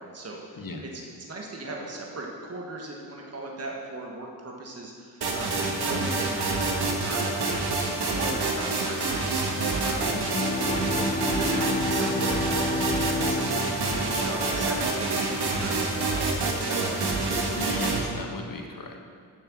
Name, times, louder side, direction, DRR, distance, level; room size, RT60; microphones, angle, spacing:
voice 1, 0.0-7.3 7.8-10.1 10.7-17.0, right 2 dB, 35° right, -1 dB, 1.5 m, -38 dB
sound 1, 5.2-18.0, right 3 dB, 65° right, 1.6 m, -27 dB
Bowed string instrument, 10.1-15.5, left 2 dB, 15° left, 0.5 m, -31 dB
voice 2, 17.6-19.0, left 2 dB, 50° left, 3 dB, 1.5 m, -36 dB
6.8 x 6.7 x 7.4 m, 2.1 s
supercardioid pair, 45°, 43 cm